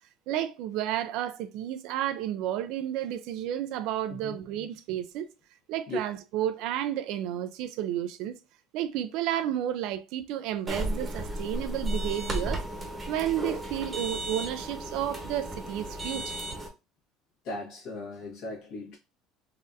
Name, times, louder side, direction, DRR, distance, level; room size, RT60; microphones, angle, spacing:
voice 1, 0.3-5.3 5.7-8.4 8.7-12.6 13.1-16.4, right 11 dB, 70° right, 0.4 m, -31 dB
voice 2, 4.1-4.4 5.9-6.0 17.4-19.0, left 2 dB, 70° left, 1.4 m, -37 dB
sound 1, 10.7-16.7, right 1 dB, 15° right, 0.9 m, -34 dB
4.0 x 2.6 x 2.5 m
cardioid pair, 135°, 0 cm